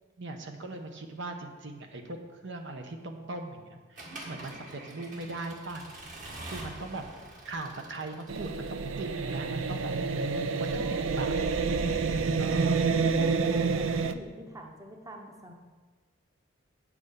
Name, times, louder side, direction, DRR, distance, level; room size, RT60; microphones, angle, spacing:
voice 1, 0.2-2.2 2.4-5.8 6.4-7.0 7.4-9.9 10.6-11.3 12.4-12.8, right 2 dB, 65° right, 4 dB, 0.9 m, -39 dB
Accelerating revving vroom / Mechanisms, 4.0-8.9, right 1 dB, 40° right, 1.8 m, -45 dB
sound 1, 8.3-14.1, right 4 dB, 90° right, 0.5 m, -28 dB
voice 2, 10.7-11.3 12.5-15.5, right 1 dB, 20° right, 2 dB, 0.9 m, -45 dB
8.7 x 6.1 x 6.8 m, 1.4 s
head